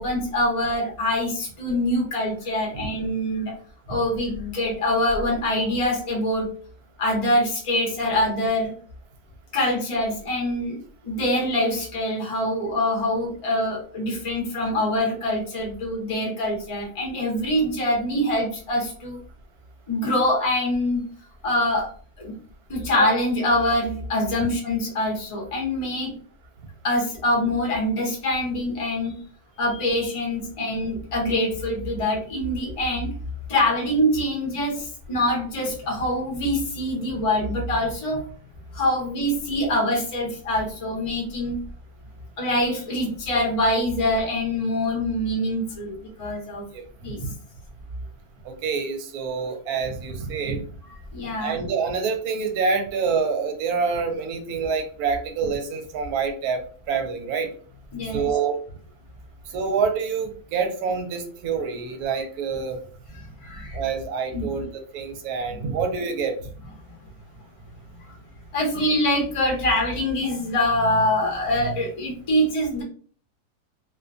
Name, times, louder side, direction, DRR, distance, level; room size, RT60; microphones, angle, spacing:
voice 1, 0.0-3.5 3.9-6.5 7.0-8.7 9.5-19.2 19.9-21.0 21.4-21.9 22.2-22.3 22.7-26.1 26.8-29.2 29.6-33.1 33.5-38.3 38.7-41.6 42.4-46.6 47.0-47.2 51.1-51.6 57.9-58.3 63.1-63.8 64.3-64.5 65.5-65.6 68.5-72.8, left 1 dB, 30° left, -1 dB, 0.6 m, -24 dB
voice 2, 48.4-50.6 51.4-57.5 58.1-58.6 59.5-62.8 63.7-66.4, right 5 dB, 80° right, 6 dB, 1.1 m, -27 dB
2.6 x 2.2 x 2.5 m, 0.43 s
omnidirectional pair, 1.6 m